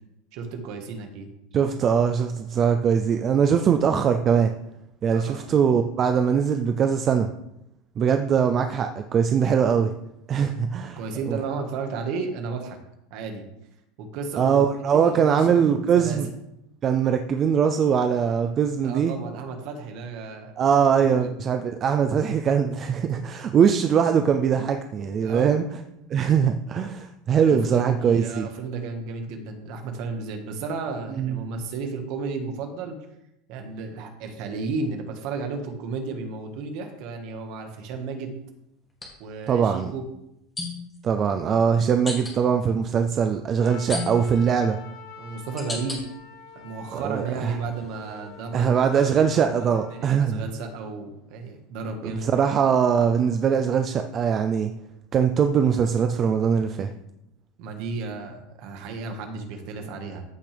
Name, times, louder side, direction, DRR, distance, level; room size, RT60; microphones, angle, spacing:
voice 1, 0.3-1.3 5.1-5.4 11.0-12.8 13.1-13.4 14.0-16.2 18.8-20.5 21.1-21.3 25.2-25.5 27.4-33.0 33.5-38.4 39.2-40.1 44.5-44.6 45.2-46.0 46.5-48.8 49.3-52.2 57.6-60.2, right 4 dB, 45° right, 4 dB, 1.6 m, -33 dB
voice 2, 1.5-4.5 5.0-7.3 8.0-9.9 10.3-11.0 11.3-11.4 14.4-16.3 16.8-19.2 20.6-25.6 26.1-28.5 31.2-31.4 39.5-39.9 41.0-44.8 46.9-47.6 48.5-50.4 52.0-54.7 55.1-56.9, right 7 dB, 25° right, 7 dB, 0.4 m, -21 dB
sound 1, 36.1-36.3 38.9-39.1 40.6-41.0 42.1-42.4 43.9-44.5 45.1-46.0 46.6-47.2 47.7-49.7, left 3 dB, 10° left, 1.9 m, -36 dB
Trumpet, 43.6-50.2, left 6 dB, 85° left, 2.3 m, -46 dB
14.0 x 6.1 x 3.4 m, 0.84 s
supercardioid pair, 170°, 0 cm